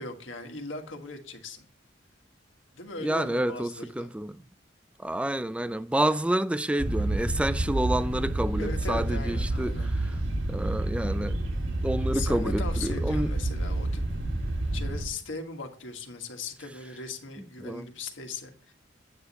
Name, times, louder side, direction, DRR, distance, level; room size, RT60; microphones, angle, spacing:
voice 1, 0.0-1.7 2.7-4.1 8.6-9.9 12.1-14.0 14.7-18.7, left 3 dB, 90° left, 1.6 m, -39 dB
voice 2, 3.0-4.4 5.0-9.7 10.5-11.4 11.8-13.3 17.6-17.9, right 1 dB, 5° right, 0.3 m, -28 dB
sound 1, 6.8-15.0, right 1 dB, 80° right, 1.9 m, -29 dB
9.0 x 7.8 x 4.2 m
head